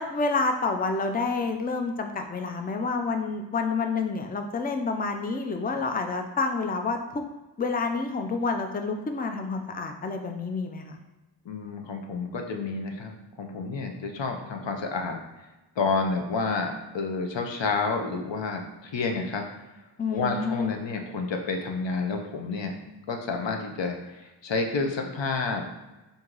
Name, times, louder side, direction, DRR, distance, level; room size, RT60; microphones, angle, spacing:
voice 1, 0.0-7.2 7.6-11.0 20.0-20.7, left 4 dB, 20° left, 5 dB, 0.4 m, -28 dB
voice 2, 11.5-15.2 15.8-19.4 20.1-22.7 23.1-25.7, left 4 dB, 75° left, 3 dB, 0.7 m, -30 dB
4.4 x 2.7 x 3.8 m, 1.1 s
wide cardioid pair, 85°, 45 cm